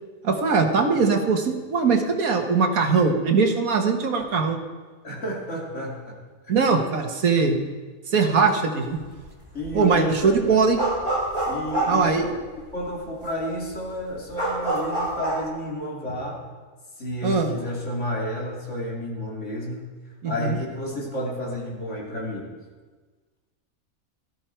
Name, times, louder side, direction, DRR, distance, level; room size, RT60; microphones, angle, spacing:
voice 1, 0.2-4.6 6.5-7.6 8.1-9.0 9.7-10.8 11.9-12.3 17.2-17.5 20.2-20.6, right 5 dB, 85° right, 4 dB, 1.8 m, -21 dB
voice 2, 5.0-6.2 6.5-6.7 9.5-10.7 11.5-16.5 17.0-19.9 20.2-22.6, left 1 dB, 60° left, -3 dB, 3.0 m, -31 dB
sound 1, 8.9-9.3 9.6-12.8 13.2-13.3 13.6-15.4, right 2 dB, 25° left, 4.4 m, -27 dB
17.5 x 13.5 x 4.5 m, 1.4 s
omnidirectional pair, 1.4 m